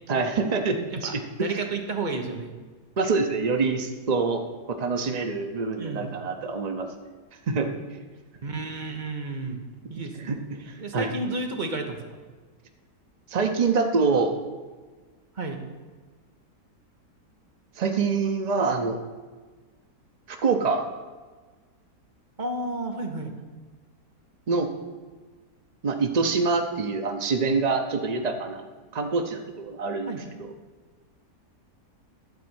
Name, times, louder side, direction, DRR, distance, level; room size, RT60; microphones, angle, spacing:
voice 1, 0.1-1.6 3.0-4.4 4.7-6.9 7.5-7.7 10.2-11.1 13.3-14.3 17.8-19.0 20.3-20.9 24.5-24.7 25.8-28.6 28.9-30.1 30.4-30.5, right 4 dB, 85° right, 5 dB, 0.3 m, -25 dB
voice 2, 0.9-2.5 5.8-6.2 8.4-9.6 9.9-10.4 10.8-12.0 15.3-15.6 22.4-23.3 30.1-30.3, right 2 dB, 30° right, 3 dB, 1.0 m, -32 dB
11.5 x 4.2 x 7.9 m, 1.4 s
omnidirectional pair, 1.8 m